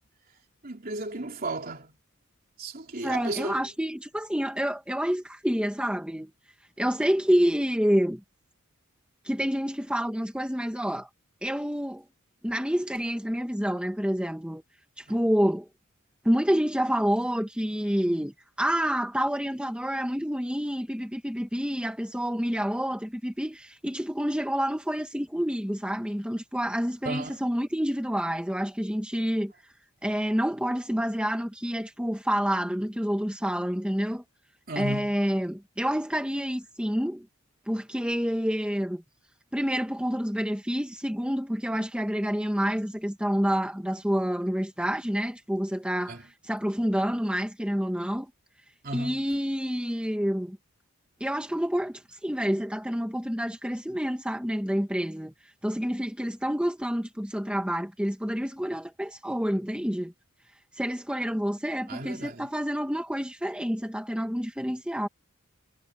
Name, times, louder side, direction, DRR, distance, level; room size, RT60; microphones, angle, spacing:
voice 1, 0.6-2.0 2.6-3.7 15.1-15.2 27.0-27.4 34.7-35.2 46.1-46.2 48.8-49.2 61.9-62.5, right 2 dB, 45° right, 3.4 m, -34 dB
voice 2, 3.0-6.3 6.8-8.2 9.2-11.1 11.4-12.0 12.4-14.6 15.0-15.7 16.2-29.5 30.0-34.2 34.8-37.3 37.7-39.0 39.5-48.3 48.9-50.6 51.2-55.3 55.6-60.1 60.8-65.1, equal, 5° right, 1.9 m, -28 dB
head